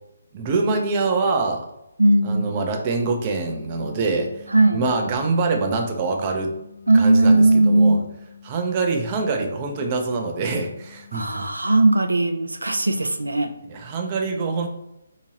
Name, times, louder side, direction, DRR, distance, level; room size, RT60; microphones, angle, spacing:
voice 1, 0.3-1.7 2.2-4.5 4.7-6.5 6.9-8.0 8.4-11.4 13.7-14.7, right 3 dB, 25° right, 3 dB, 0.5 m, -24 dB
voice 2, 2.0-2.6 4.5-4.8 6.9-8.0 11.1-13.5, right 2 dB, 75° right, 6 dB, 0.4 m, -18 dB
sound 1, 3.3-5.4 6.0-8.7 9.3-11.6, equal, 55° left, 0.5 m, -46 dB
4.5 x 2.8 x 2.8 m, 0.89 s
figure-of-eight pair, 140°, 0 cm